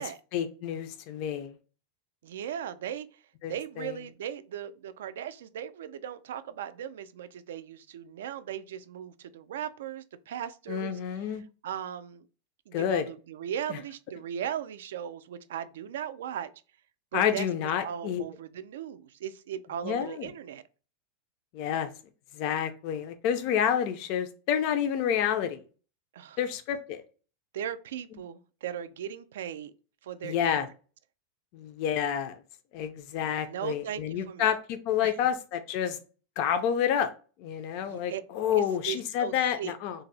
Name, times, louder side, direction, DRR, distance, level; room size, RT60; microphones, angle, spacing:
voice 1, 0.3-1.5 3.4-3.9 10.7-11.4 12.7-13.0 13.7-13.8 17.1-18.2 19.8-20.3 21.5-21.9 22.3-25.6 26.4-27.0 30.2-30.7 31.5-32.4 32.7-36.0 36.4-37.1 37.4-40.0, left 9 dB, 40° left, 0.3 m, -29 dB
voice 2, 2.2-3.2 3.5-11.4 11.6-12.3 12.7-16.5 17.1-17.5 17.8-20.6 26.1-26.4 27.5-29.7 30.0-30.7 33.4-34.5 35.0-35.1 37.8-38.2 38.5-39.7, right 9 dB, 90° right, 0.3 m, -38 dB
2.5 x 2.0 x 3.8 m
supercardioid pair, 170°, 0 cm